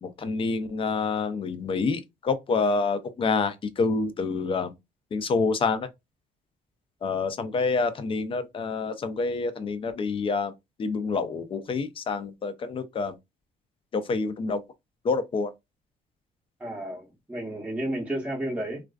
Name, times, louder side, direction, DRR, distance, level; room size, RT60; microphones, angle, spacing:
voice 1, 0.0-4.7 5.1-5.9 7.0-10.5 10.8-13.2 13.9-14.6 15.0-15.5, left 4 dB, 30° left, 0.4 m, -27 dB
voice 2, 16.6-18.8, right 1 dB, 5° right, 0.7 m, -32 dB
2.3 x 2.3 x 2.3 m
cardioid pair, 110°, 17 cm